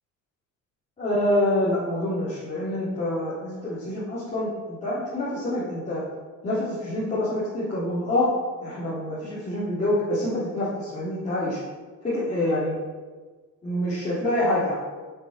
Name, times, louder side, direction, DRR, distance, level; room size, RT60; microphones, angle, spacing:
voice 1, 1.0-6.0 6.4-8.3 8.6-11.6 12.0-12.8 13.6-14.7, left 1 dB, 20° left, -12 dB, 3.7 m, -26 dB
11.0 x 7.9 x 6.5 m, 1.4 s
cardioid pair, 180°, 31 cm